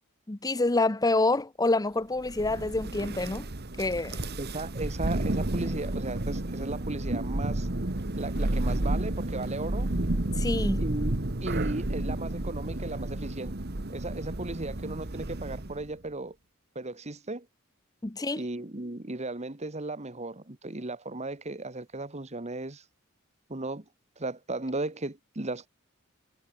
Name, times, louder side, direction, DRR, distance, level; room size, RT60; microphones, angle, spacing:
voice 1, 0.3-3.5 3.8-4.2 10.4-10.8 18.0-18.4, left 2 dB, 15° left, 0.7 m, -27 dB
Thunder, 2.2-15.9, right 1 dB, 50° right, 1.6 m, -31 dB
voice 2, 4.4-7.7 8.2-9.9 10.8-13.6 13.9-16.4 16.7-17.5 18.4-22.8 23.5-23.8 24.2-25.7, right 2 dB, 30° right, 1.6 m, -36 dB
head